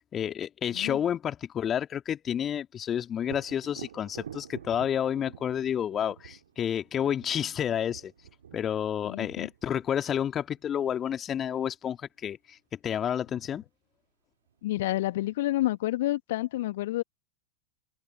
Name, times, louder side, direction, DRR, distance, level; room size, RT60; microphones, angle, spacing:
voice 1, 0.0-8.1 8.5-12.0 12.2-12.6 12.8-13.6, left 9 dB, 25° left, 2.4 m, -30 dB
Thunder, 3.2-10.9 14.5-14.6 15.1-16.0, right 9 dB, 65° right, 2.3 m, -48 dB
voice 2, 9.0-9.5 14.6-17.0, left 16 dB, 55° left, 1.8 m, -29 dB
figure-of-eight pair, 90°, 0 cm